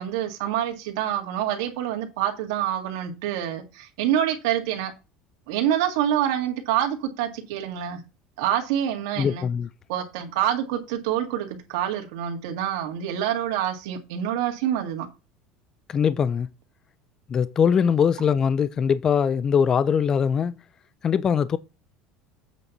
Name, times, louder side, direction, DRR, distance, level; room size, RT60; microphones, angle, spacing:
voice 1, 0.0-4.9 5.5-8.0 8.4-9.5 9.9-15.1, right 11 dB, 85° right, 1.9 m, -26 dB
voice 2, 9.2-9.7 15.9-16.5 17.3-20.6 21.0-21.6, left 7 dB, 25° left, 0.4 m, -22 dB
8.2 x 4.1 x 5.9 m
cardioid pair, 145°, 2 cm